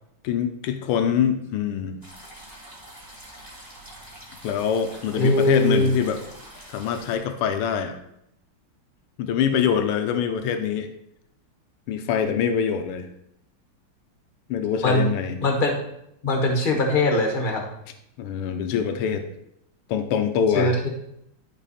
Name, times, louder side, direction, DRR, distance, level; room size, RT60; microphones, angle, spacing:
voice 1, 0.2-2.0 4.4-6.2 6.7-8.0 9.2-10.9 11.9-13.1 14.5-15.4 18.2-19.2 19.9-20.7, left 8 dB, 90° left, 7 dB, 1.6 m, -24 dB
sound 1, 2.0-7.2, right 1 dB, 10° right, 2.1 m, -45 dB
voice 2, 5.1-5.9 14.8-15.1 15.4-15.7 16.2-17.6 20.5-20.9, left 2 dB, 30° left, 2 dB, 1.2 m, -21 dB
11.5 x 4.2 x 4.1 m, 0.77 s
omnidirectional pair, 2.4 m